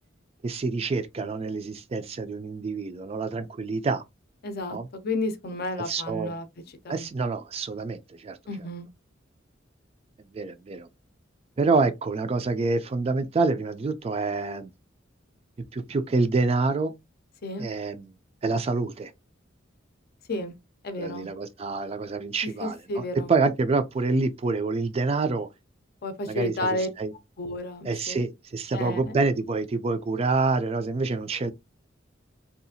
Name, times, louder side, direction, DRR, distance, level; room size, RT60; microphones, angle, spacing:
voice 1, 0.4-4.0 4.7-4.9 5.9-6.3 6.9-8.4 10.3-10.9 11.6-14.7 15.7-17.0 17.6-18.1 18.4-19.1 21.0-25.5 26.3-27.1 27.8-31.5, right 3 dB, 30° right, 0.3 m, -27 dB
voice 2, 4.4-7.1 8.5-8.9 17.4-17.7 20.3-20.5 20.8-21.3 22.4-23.3 26.0-26.9 27.4-28.2 28.7-29.2, left 2 dB, 55° left, 0.5 m, -32 dB
2.7 x 2.4 x 2.6 m
head